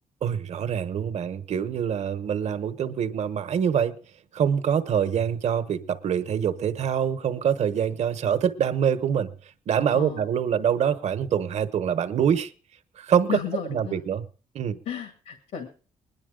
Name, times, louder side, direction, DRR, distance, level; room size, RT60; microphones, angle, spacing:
voice 1, 0.2-3.9 4.3-9.3 9.7-12.5 13.0-13.4 13.7-14.2 14.5-14.8, right 8 dB, 60° right, 1.1 m, -25 dB
voice 2, 9.9-10.3 13.3-14.0 14.9-15.7, left 8 dB, 70° left, 2.0 m, -33 dB
20.5 x 10.5 x 3.8 m
cardioid pair, 125°, 13 cm